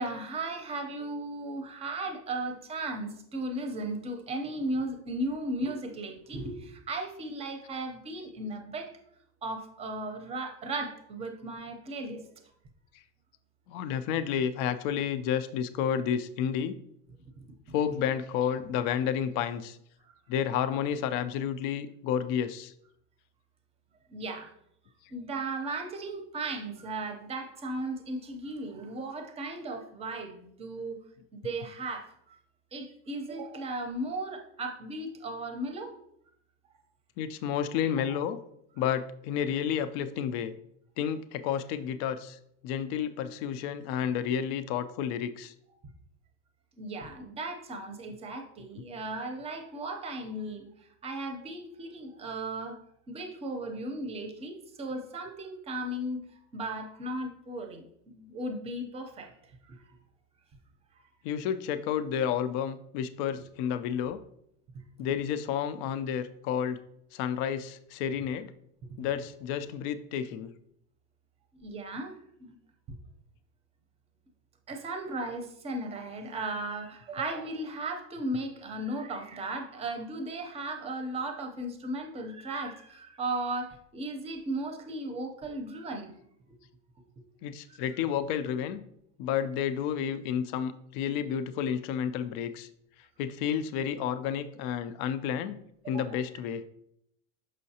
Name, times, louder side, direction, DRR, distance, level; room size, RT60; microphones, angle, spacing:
voice 1, 0.0-8.9 9.4-12.2 24.1-24.5 25.1-31.0 31.3-32.4 32.7-36.0 38.1-38.2 46.8-52.8 53.1-56.2 56.5-59.3 59.7-59.8 69.0-69.1 71.6-72.5 74.7-86.1 86.5-86.6 87.7-87.8 95.8-96.2, right 2 dB, 20° right, 5 dB, 0.6 m, -36 dB
voice 2, 13.7-16.8 17.7-19.8 20.3-22.7 37.2-38.4 38.8-40.5 41.0-42.4 42.6-45.5 61.2-64.2 65.0-66.8 67.1-68.5 69.0-70.5 87.4-88.8 89.2-92.7 93.2-95.6 95.9-96.6, left 8 dB, 60° left, 12 dB, 0.5 m, -31 dB
6.4 x 5.6 x 2.8 m, 0.73 s
cardioid pair, 165°, 31 cm